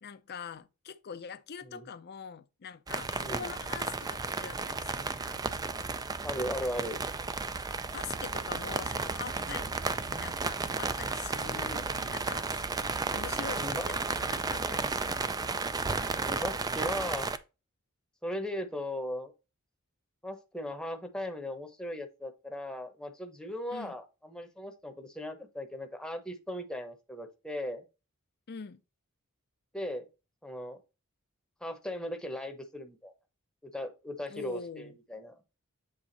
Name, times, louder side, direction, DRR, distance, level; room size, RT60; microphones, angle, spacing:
voice 1, 0.0-5.4 7.9-12.4 13.1-15.4 23.7-24.0 28.5-28.8 34.3-35.0, left 6 dB, 50° left, 0.5 m, -44 dB
sound 1, 2.9-17.4, right 4 dB, 15° right, 0.3 m, -33 dB
voice 2, 6.2-7.0 11.5-11.8 13.6-13.9 16.1-17.3 18.2-19.3 20.2-27.8 29.7-30.0 30.4-30.8 31.6-33.1 33.6-35.4, left 1 dB, 5° left, 0.9 m, -38 dB
7.6 x 3.6 x 3.9 m
head